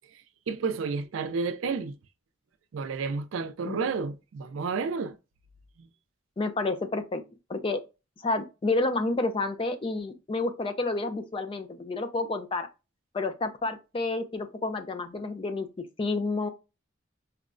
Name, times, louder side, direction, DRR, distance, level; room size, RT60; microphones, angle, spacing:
voice 1, 0.5-2.0 2.7-5.1, right 5 dB, 85° right, 0.4 m, -31 dB
voice 2, 6.4-7.2 7.5-7.8 8.2-12.7 13.1-16.5, left 3 dB, 25° left, 0.4 m, -30 dB
4.5 x 2.0 x 2.4 m
head